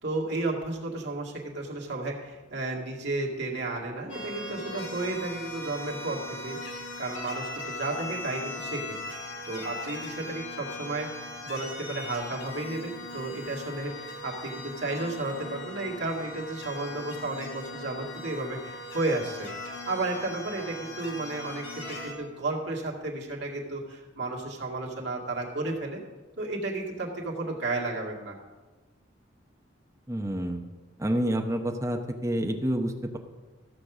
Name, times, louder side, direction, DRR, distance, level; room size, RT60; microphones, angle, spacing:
voice 1, 0.0-6.6 7.0-9.0 9.4-19.5 19.9-26.0 26.4-28.4, right 2 dB, 55° right, -2 dB, 2.2 m, -33 dB
sound 1, 4.1-22.1, left 2 dB, 70° left, 1.9 m, -39 dB
voice 2, 30.1-30.6 31.0-33.2, right 1 dB, 15° right, 4 dB, 0.9 m, -28 dB
14.0 x 6.6 x 6.1 m, 1.2 s
head